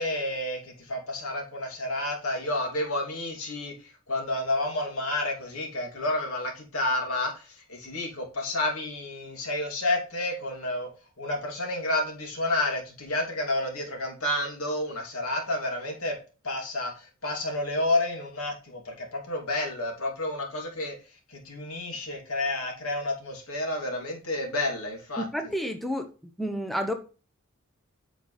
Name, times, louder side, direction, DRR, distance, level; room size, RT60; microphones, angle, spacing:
voice 1, 0.0-3.7 4.1-10.9 11.2-16.1 16.4-20.9 21.3-25.2, left 1 dB, 85° left, 2.9 m, -30 dB
voice 2, 25.2-26.1 26.4-26.9, equal, ahead, 0.8 m, -30 dB
8.6 x 6.9 x 3.3 m
head